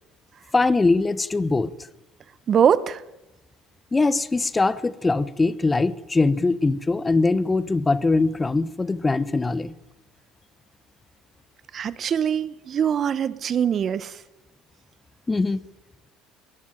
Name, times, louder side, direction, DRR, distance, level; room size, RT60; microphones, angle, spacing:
voice 1, 0.5-1.7 3.9-9.7 15.3-15.6, left 3 dB, 20° left, 1.1 m, -22 dB
voice 2, 2.5-3.0 11.7-14.2, right 8 dB, 45° right, 1.1 m, -22 dB
22.5 x 19.0 x 9.2 m
hypercardioid pair, 75°, 0 cm